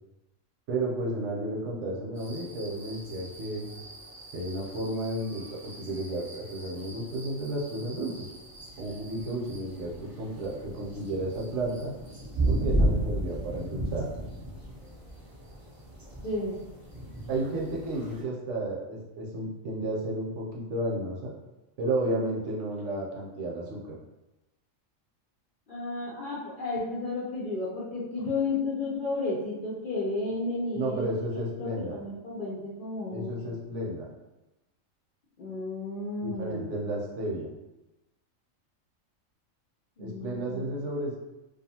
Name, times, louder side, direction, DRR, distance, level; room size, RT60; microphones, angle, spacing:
voice 1, 0.7-3.7 4.3-8.3 8.8-11.9 12.5-14.1 17.3-21.3 21.8-23.9 30.7-32.0 33.1-34.1 36.2-37.5 40.0-41.2, right 1 dB, 70° right, -2 dB, 0.9 m, -32 dB
sound 1, 2.2-18.2, right 1 dB, 30° right, 0.4 m, -35 dB
voice 2, 16.2-16.6 25.7-33.5 35.4-36.7 40.0-40.6, left 3 dB, 60° left, -7 dB, 0.5 m, -33 dB
2.6 x 2.4 x 2.7 m, 1.0 s
omnidirectional pair, 1.4 m